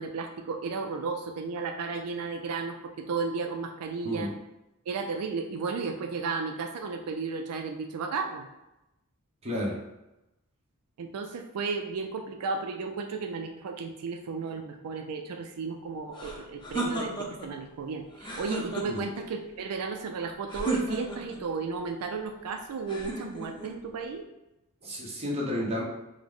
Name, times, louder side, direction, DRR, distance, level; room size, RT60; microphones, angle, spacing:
voice 1, 0.0-4.3 4.9-8.5 11.0-24.2, right 4 dB, 85° right, 5 dB, 0.4 m, -34 dB
voice 2, 9.4-9.8 18.8-19.0 24.8-25.8, left 1 dB, 30° right, -3 dB, 1.0 m, -31 dB
sound 1, 16.1-17.5 18.1-19.2 20.5-21.4 22.9-23.7, right 2 dB, 20° left, 0.7 m, -34 dB
4.9 x 2.1 x 3.6 m, 0.95 s
head